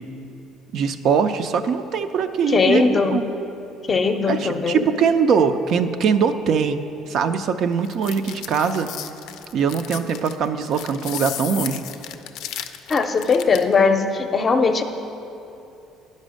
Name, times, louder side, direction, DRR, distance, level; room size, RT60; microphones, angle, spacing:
voice 1, 0.7-3.2 4.3-8.9 9.5-11.8, right 6 dB, 60° right, 9 dB, 0.4 m, -22 dB
voice 2, 2.5-3.3 3.9-4.9 12.9-14.8, left 4 dB, 30° left, 7 dB, 0.6 m, -19 dB
sound 1, 7.8-13.7, left 11 dB, 80° left, 0.4 m, -34 dB
9.9 x 5.3 x 6.3 m, 2.8 s
cardioid pair, 110°, 0 cm